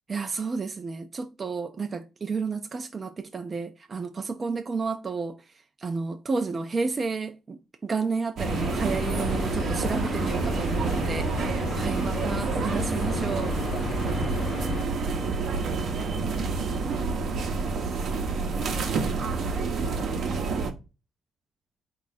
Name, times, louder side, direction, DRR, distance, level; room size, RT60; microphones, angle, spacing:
voice 1, 0.1-5.4 5.8-13.5, right 4 dB, 35° right, 0.4 m, -31 dB
sound 1, 8.4-14.8, left 5 dB, 50° left, 0.4 m, -34 dB
sound 2, 8.4-20.7, right 4 dB, 65° right, 0.7 m, -28 dB
4.0 x 2.4 x 4.0 m
cardioid pair, 90°, 0 cm